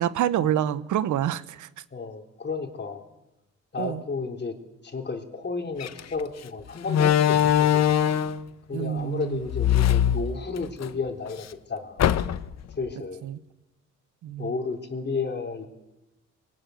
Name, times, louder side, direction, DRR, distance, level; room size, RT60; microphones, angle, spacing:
voice 1, 0.0-1.7 3.8-4.0 8.7-9.4 13.2-13.4 14.2-14.5, right 11 dB, 75° right, 16 dB, 1.0 m, -27 dB
voice 2, 1.9-3.0 3.7-4.5 4.8-7.9 8.7-12.0 12.8-13.2 14.4-15.7, left 4 dB, 35° left, 4 dB, 3.7 m, -32 dB
Slam, 5.8-6.0 6.9-8.4 9.5-10.9 11.3-11.4 12.0-12.6, left 10 dB, 60° left, 1.0 m, -21 dB
22.5 x 18.5 x 9.4 m, 0.95 s
cardioid pair, 90°, 30 cm